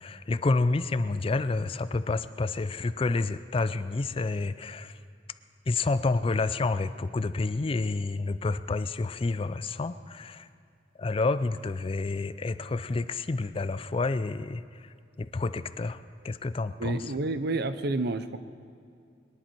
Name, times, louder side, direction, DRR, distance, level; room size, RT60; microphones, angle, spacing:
voice 1, 0.0-4.9 5.7-10.5 11.0-14.6 15.2-17.0, left 3 dB, 30° left, 13 dB, 0.4 m, -29 dB
voice 2, 16.8-18.4, right 2 dB, 60° right, 11 dB, 0.7 m, -29 dB
23.0 x 11.0 x 4.5 m, 2.4 s
head